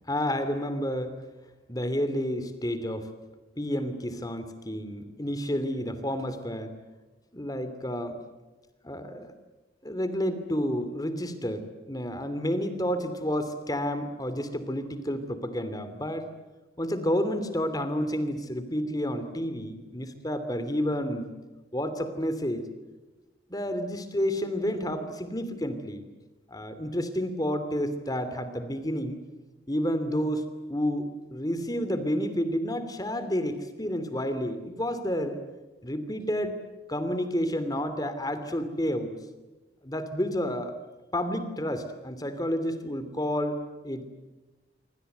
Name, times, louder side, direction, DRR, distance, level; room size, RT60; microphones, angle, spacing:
voice 1, 0.1-1.1 1.7-3.1 3.6-6.7 7.3-8.2 8.8-9.3 9.8-16.3 16.8-21.3 21.7-22.7 23.5-26.0 26.5-29.2 29.7-35.4 35.8-36.5 36.9-39.1 39.8-40.7 41.1-44.1, equal, 20° left, 11 dB, 2.7 m, -30 dB
27.0 x 25.0 x 8.0 m, 1.2 s
head